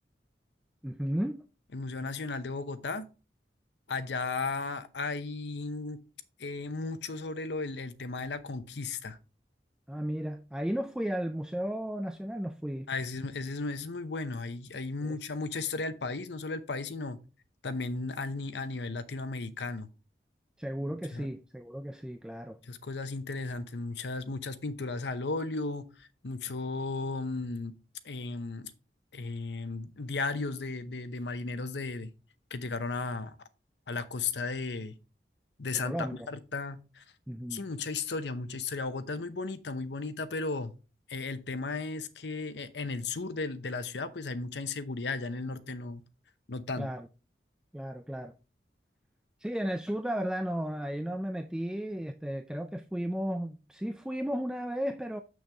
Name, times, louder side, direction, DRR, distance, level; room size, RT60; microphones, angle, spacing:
voice 1, 0.8-1.4 9.9-12.9 15.0-15.2 20.6-22.6 35.8-36.3 37.3-37.6 46.8-47.1 47.7-48.3 49.4-55.2, equal, 5° right, 0.3 m, -34 dB
voice 2, 1.7-3.1 3.9-6.0 6.4-9.2 12.9-17.2 17.6-19.9 20.8-21.3 22.6-27.7 28.0-28.7 29.1-32.1 32.5-33.4 33.9-35.0 35.6-37.0 37.5-40.7 41.1-46.0 46.5-46.9, left 3 dB, 85° left, 0.8 m, -35 dB
7.0 x 6.3 x 3.4 m
head